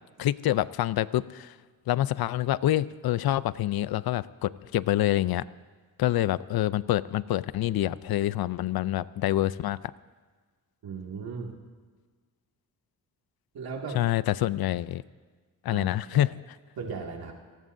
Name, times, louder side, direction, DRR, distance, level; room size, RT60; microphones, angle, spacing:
voice 1, 0.2-1.5 1.9-5.4 6.0-9.8 13.9-15.0 15.6-16.3, left 13 dB, 80° left, 17 dB, 0.5 m, -26 dB
voice 2, 10.8-11.6 13.5-14.0 15.7-16.2 16.8-17.3, right 5 dB, 85° right, 1 dB, 2.2 m, -37 dB
28.5 x 18.5 x 2.7 m, 1.5 s
wide cardioid pair, 120°, 36 cm